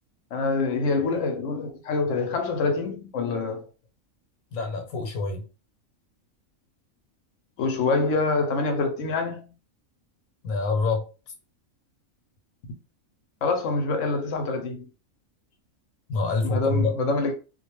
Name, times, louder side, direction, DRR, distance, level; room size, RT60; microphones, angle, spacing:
voice 1, 0.3-3.7 7.6-9.4 13.4-14.9 16.4-17.3, left 3 dB, 70° left, 0.9 m, -25 dB
voice 2, 4.5-5.4 10.4-11.1 16.1-16.9, left 3 dB, 90° left, 1.1 m, -26 dB
2.4 x 2.2 x 2.9 m
omnidirectional pair, 1.4 m